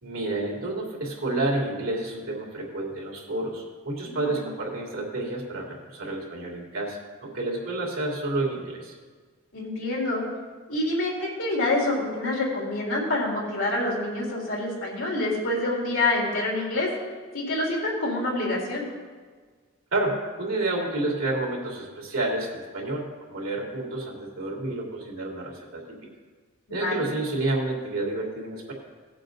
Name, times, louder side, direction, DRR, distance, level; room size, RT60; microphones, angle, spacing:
voice 1, 0.0-8.9 19.9-25.8 26.7-28.7, right 2 dB, 75° right, -2 dB, 3.0 m, -30 dB
voice 2, 4.0-4.5 9.5-10.3 10.7-16.9 17.3-18.9 26.7-27.1, left 2 dB, 70° left, -3 dB, 3.7 m, -27 dB
17.5 x 7.5 x 4.0 m, 1.5 s
head